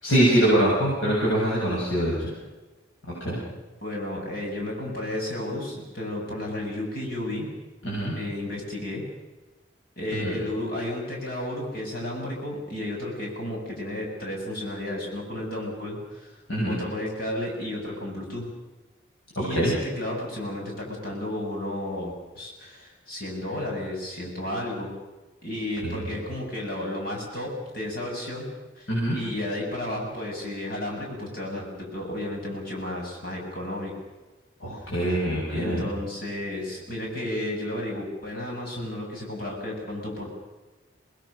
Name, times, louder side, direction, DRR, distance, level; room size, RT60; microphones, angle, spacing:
voice 1, 0.0-2.3 3.2-3.4 7.8-8.1 10.1-10.3 16.5-16.8 19.5-19.7 25.8-26.1 28.9-29.2 34.6-35.9, right 1 dB, 90° left, -6 dB, 7.6 m, -24 dB
voice 2, 3.8-7.5 8.2-9.0 10.0-18.5 19.4-24.9 25.4-28.4 28.8-33.9 34.8-35.0 35.5-40.3, left 1 dB, 50° left, -1 dB, 7.4 m, -32 dB
27.0 x 19.5 x 6.6 m, 1.2 s
head